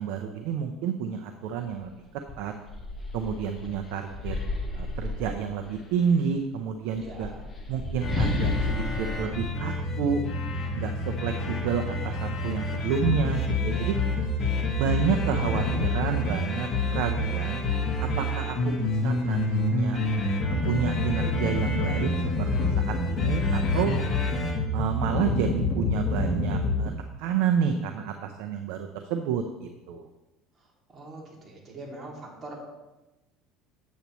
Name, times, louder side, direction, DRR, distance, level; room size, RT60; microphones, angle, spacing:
voice 1, 0.0-1.9 2.4-2.5 3.1-4.4 4.7-7.3 7.7-10.2 10.7-14.0 14.6-17.6 18.0-20.0 20.4-23.9 24.7-26.9 27.2-30.1, right 7 dB, 75° right, 5 dB, 0.7 m, -30 dB
sound 1, 1.7-1.9 2.3-5.9 6.8-10.5, left 2 dB, 15° left, 1.4 m, -33 dB
voice 2, 7.0-7.4 30.9-32.6, right 2 dB, 30° right, -2 dB, 2.5 m, -42 dB
sound 2, 8.0-26.9, left 2 dB, 35° left, 1.6 m, -27 dB
8.3 x 8.2 x 3.1 m, 1.1 s
supercardioid pair, 115°, 0 cm